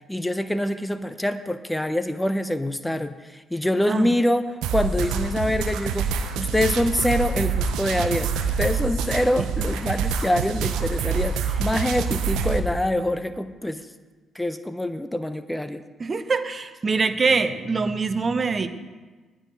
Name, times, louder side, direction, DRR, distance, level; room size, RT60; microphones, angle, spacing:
voice 1, 0.1-8.3 8.6-13.9 14.3-15.8, left 1 dB, 10° left, 12 dB, 0.7 m, -25 dB
sound 1, 4.6-12.6, right 6 dB, 70° right, 0.8 m, -26 dB
voice 2, 16.0-18.7, right 4 dB, 40° right, 11 dB, 0.9 m, -24 dB
19.0 x 6.4 x 5.3 m, 1.3 s
hypercardioid pair, 45°, 0 cm